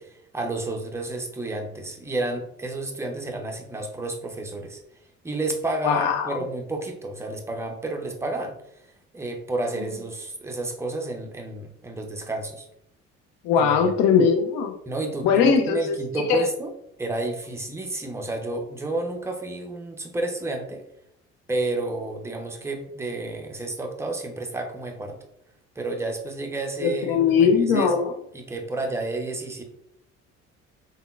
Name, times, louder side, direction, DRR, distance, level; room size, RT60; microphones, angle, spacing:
voice 1, 0.0-4.8 5.2-8.5 9.1-12.7 13.6-13.9 14.9-16.7 17.0-20.8 21.5-25.2 25.8-29.6, right 2 dB, 5° right, 2 dB, 0.5 m, -31 dB
voice 2, 5.8-6.4 13.4-14.7 15.2-16.0 16.3-16.5 26.8-28.0, left 6 dB, 60° left, 5 dB, 0.5 m, -20 dB
3.5 x 2.1 x 2.3 m, 0.76 s
hypercardioid pair, 55°, 38 cm